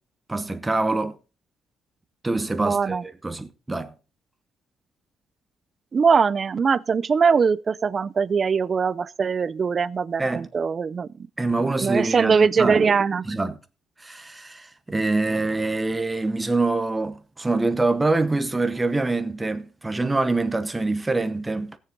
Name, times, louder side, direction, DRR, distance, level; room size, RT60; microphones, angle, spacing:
voice 1, 0.3-1.2 2.2-3.9 10.2-10.5 11.4-12.9 13.3-13.6 14.0-21.8, right 3 dB, 10° right, 0.9 m, -25 dB
voice 2, 2.6-3.0 5.9-11.1 11.8-13.3, right 5 dB, 30° right, 0.5 m, -21 dB
18.5 x 7.0 x 3.9 m
cardioid pair, 175°, 0 cm